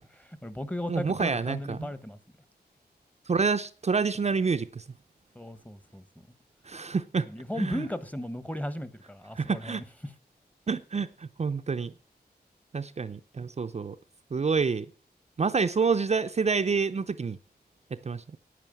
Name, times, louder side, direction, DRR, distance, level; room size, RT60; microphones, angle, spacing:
voice 1, 0.1-2.2 5.3-6.3 7.3-10.1, left 1 dB, 10° left, 1.1 m, -36 dB
voice 2, 0.9-1.9 3.3-4.8 6.6-7.3 7.6-7.8 9.4-9.8 10.7-11.9 12.7-14.0 14.3-14.9 15.4-17.4 17.9-18.4, right 5 dB, 40° right, 0.6 m, -28 dB
9.9 x 9.1 x 7.6 m
wide cardioid pair, 140°, 17 cm